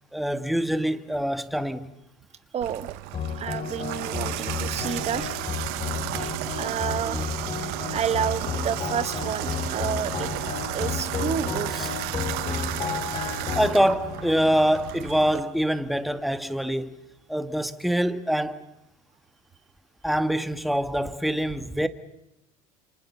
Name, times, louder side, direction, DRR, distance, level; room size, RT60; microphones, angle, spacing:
voice 1, 0.1-1.9 7.0-7.3 12.1-17.0 17.3-18.7 20.0-21.9, equal, ahead, 1.5 m, -25 dB
voice 2, 2.5-2.9 3.4-5.5 6.1-7.3 7.9-12.4, right 8 dB, 40° right, 1.1 m, -31 dB
Water tap faucet / Bathtub (filling or washing), 2.6-15.4, right 18 dB, 65° right, 0.9 m, -33 dB
sound 1, 3.1-15.6, left 6 dB, 40° left, 3.6 m, -33 dB
28.5 x 26.5 x 7.1 m
supercardioid pair, 90°, 17 cm